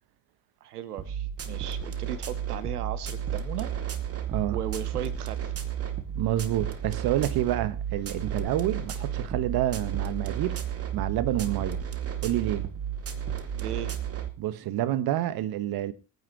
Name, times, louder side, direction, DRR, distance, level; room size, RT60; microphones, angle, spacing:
voice 1, 0.6-3.7 4.5-5.5 13.5-14.0, right 10 dB, 85° right, 1.0 m, -36 dB
sound 1, 1.0-14.3, right 9 dB, 30° right, 2.2 m, -32 dB
voice 2, 6.1-11.8 12.2-12.7 14.4-15.9, right 13 dB, 50° right, 1.4 m, -28 dB
26.0 x 9.5 x 3.0 m
hypercardioid pair, 65°, 45 cm